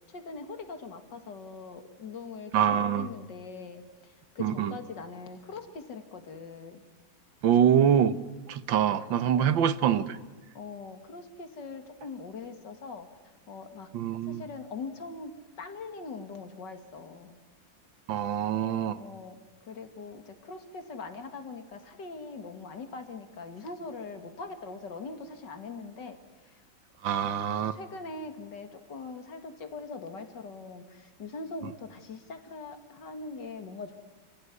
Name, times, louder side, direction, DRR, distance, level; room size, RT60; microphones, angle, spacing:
voice 1, 0.1-6.8 9.3-9.6 10.5-13.1 13.5-13.9 14.2-15.3 15.6-17.4 18.8-19.4 19.6-26.2 26.5-26.6 27.7-34.0, left 4 dB, 70° left, 2.7 m, -42 dB
voice 2, 2.5-3.1 4.4-4.7 7.4-8.2 8.5-10.2 13.9-14.4 18.1-19.0 27.0-27.8, right 9 dB, 85° right, 1.8 m, -25 dB
28.5 x 16.5 x 9.7 m
omnidirectional pair, 2.0 m